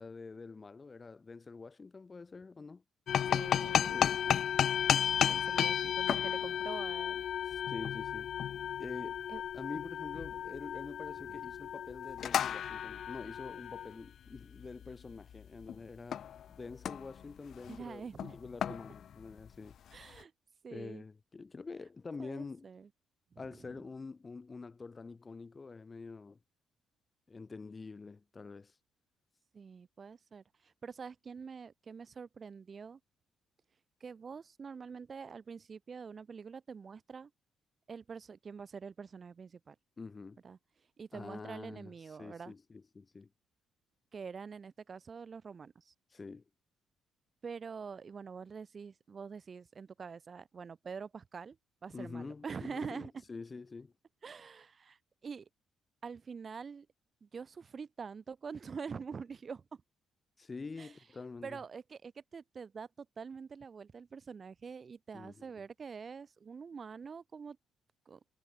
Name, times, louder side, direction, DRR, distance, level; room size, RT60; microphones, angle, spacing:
voice 1, 0.0-2.8 3.9-4.2 7.4-8.3 8.8-9.2 9.5-16.2 16.5-19.8 20.7-22.7 23.4-26.4 27.3-28.7 40.0-40.4 41.1-43.3 46.1-46.4 51.9-53.9 60.4-61.6 65.1-65.5, left 4 dB, 25° left, 1.3 m, -46 dB
sound 1, 3.1-15.8 16.1-16.4 16.7-17.2 17.5-17.8 18.2-19.7, left 9 dB, 55° left, 0.3 m, -33 dB
voice 2, 3.3-4.4 5.3-7.2 9.3-9.4 11.3-11.4 17.7-18.4 19.9-20.3 20.6-21.0 22.2-22.9 23.3-23.4 29.5-33.0 34.0-37.3 37.9-39.7 40.4-40.6 41.0-42.5 44.1-45.9 47.4-51.6 51.8-53.1 54.2-55.5 56.0-56.9 57.2-59.8 60.8-60.9 61.4-67.6 68.1-68.2, right 5 dB, 30° right, 1.4 m, -45 dB
cardioid pair, 140°, 0 cm